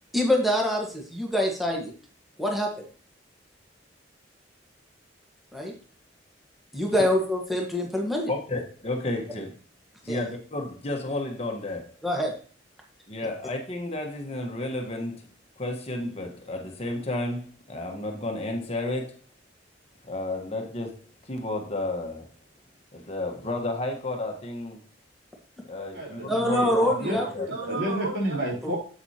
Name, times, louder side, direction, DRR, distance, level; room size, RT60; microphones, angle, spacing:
voice 1, 0.1-1.9 2.4-2.7 5.5-5.7 6.7-8.3 10.1-10.2 12.0-12.3 26.3-27.5 28.6-28.7, left 1 dB, ahead, 1.5 m, -25 dB
voice 2, 8.3-9.6 10.0-11.9 13.1-15.2 15.6-19.2 20.1-22.3 22.9-24.8 25.7-27.4, left 2 dB, 35° left, 1.4 m, -32 dB
voice 3, 25.9-28.8, right 1 dB, 85° right, 4.2 m, -30 dB
7.9 x 7.7 x 2.9 m
head